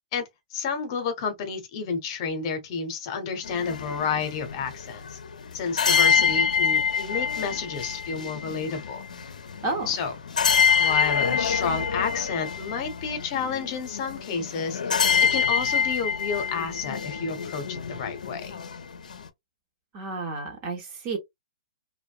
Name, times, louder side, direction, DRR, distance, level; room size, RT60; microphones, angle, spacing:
voice 1, 0.5-5.2 5.5-9.0 9.9-10.1 10.8-15.0 15.3-18.6, left 5 dB, 40° left, 0.8 m, -30 dB
sound 1, 3.4-19.3, left 6 dB, 85° left, 0.5 m, -26 dB
voice 2, 19.9-21.2, right 3 dB, 30° right, 0.8 m, -31 dB
2.5 x 2.1 x 2.4 m
hypercardioid pair, 145°, 4 cm